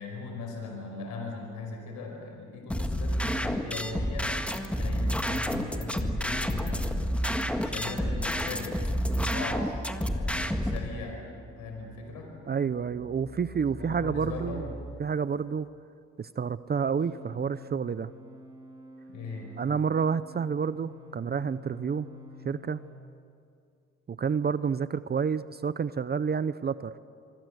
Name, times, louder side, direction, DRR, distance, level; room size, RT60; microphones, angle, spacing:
voice 1, 0.0-4.3 4.7-6.9 7.6-8.7 9.1-11.2 11.6-12.3 13.8-14.7 19.1-19.5, left 3 dB, 90° left, 2 dB, 5.1 m, -39 dB
sound 1, 2.7-10.8, equal, 5° left, 1.8 m, -29 dB
sound 2, 9.1-15.0 16.9-23.0, equal, 15° right, 5.4 m, -46 dB
voice 2, 12.5-14.7 15.0-15.7 16.2-18.1 19.6-22.1 22.4-22.8 24.1-26.9, right 6 dB, 35° right, 15 dB, 0.7 m, -29 dB
25.0 x 25.0 x 8.0 m, 2.5 s
cardioid pair, 90°, 30 cm